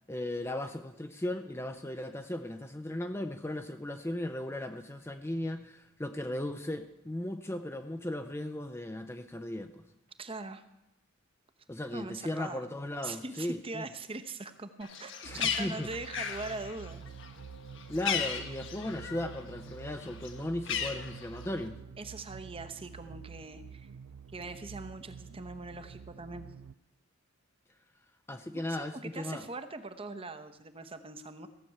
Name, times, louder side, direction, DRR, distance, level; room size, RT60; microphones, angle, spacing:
voice 1, 0.1-9.9 11.7-13.8 15.2-15.9 17.9-21.8 28.3-29.5, left 1 dB, 10° left, 7 dB, 0.5 m, -37 dB
voice 2, 10.2-10.6 11.9-12.6 13.0-17.1 22.0-23.9 24.3-26.5 28.5-31.5, right 3 dB, 25° right, 9 dB, 0.9 m, -42 dB
Bird, 14.8-19.4 19.7-21.7, left 7 dB, 60° left, 1.3 m, -36 dB
sound 1, 15.2-26.7, right 6 dB, 70° right, 0.4 m, -48 dB
15.5 x 6.8 x 8.6 m, 0.92 s
head